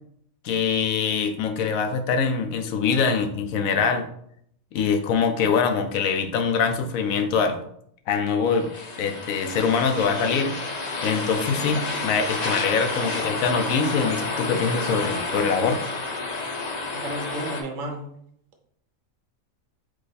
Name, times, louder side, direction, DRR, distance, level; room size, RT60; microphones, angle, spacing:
voice 1, 0.4-4.0 4.7-7.6 8.1-8.7 9.0-10.5 11.0-15.8, left 5 dB, 80° left, 6 dB, 1.0 m, -23 dB
sound 1, 8.4-17.6, left 3 dB, 45° left, 0.6 m, -30 dB
voice 2, 16.9-18.1, right 1 dB, 70° right, 3 dB, 1.2 m, -32 dB
4.9 x 2.4 x 4.0 m, 0.68 s
omnidirectional pair, 1.4 m